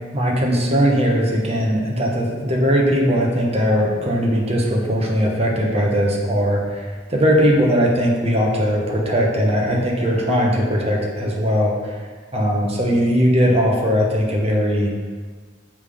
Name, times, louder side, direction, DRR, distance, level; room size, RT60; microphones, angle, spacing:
voice 1, 0.1-14.9, equal, 35° right, -1 dB, 1.1 m, -19 dB
7.3 x 3.6 x 4.9 m, 1.5 s
head